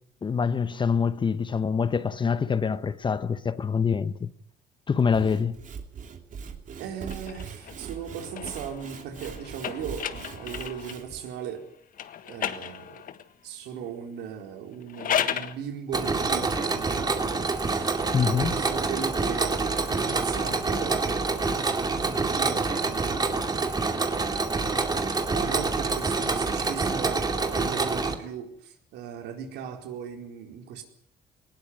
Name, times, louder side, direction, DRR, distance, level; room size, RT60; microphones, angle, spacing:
voice 1, 0.2-4.3 4.9-5.6 18.1-18.6, left 6 dB, 30° left, 1.1 m, -25 dB
Sawing / Wood, 5.0-11.2, right 6 dB, 50° right, 2.9 m, -41 dB
voice 2, 6.8-11.7 12.2-13.1 13.4-21.6 22.0-23.0 25.3-30.8, right 8 dB, 85° right, 4.4 m, -38 dB
sound 1, 7.0-11.1 11.9-13.3 14.7-15.6, left 9 dB, 55° left, 1.5 m, -34 dB
Mechanisms, 15.9-28.1, right 3 dB, 25° right, 2.5 m, -27 dB
20.0 x 18.5 x 9.6 m
cardioid pair, 110°, 17 cm